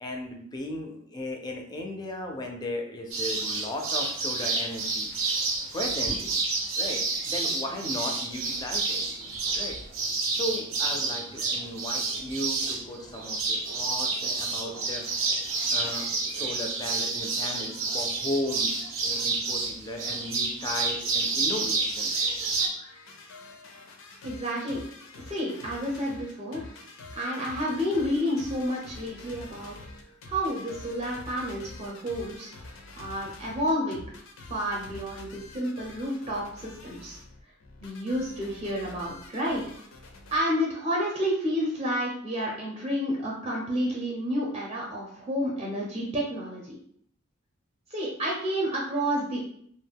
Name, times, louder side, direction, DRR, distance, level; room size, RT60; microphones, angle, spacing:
voice 1, 0.0-5.1 5.7-6.3 6.8-9.0 9.5-9.8 10.3-15.1 15.7-22.2 22.7-23.0, left 1 dB, 20° left, 3 dB, 0.4 m, -36 dB
sound 1, 3.1-22.7, right 3 dB, 90° right, 0.6 m, -29 dB
sound 2, 22.7-40.4, left 2 dB, 85° left, 0.4 m, -47 dB
voice 2, 24.2-24.8 25.3-26.7 27.1-29.8 30.3-32.5 33.0-34.0 34.4-37.2 37.8-39.6 40.3-46.8 47.9-49.4, equal, 30° right, -3 dB, 0.5 m, -30 dB
2.3 x 2.1 x 3.4 m, 0.64 s
head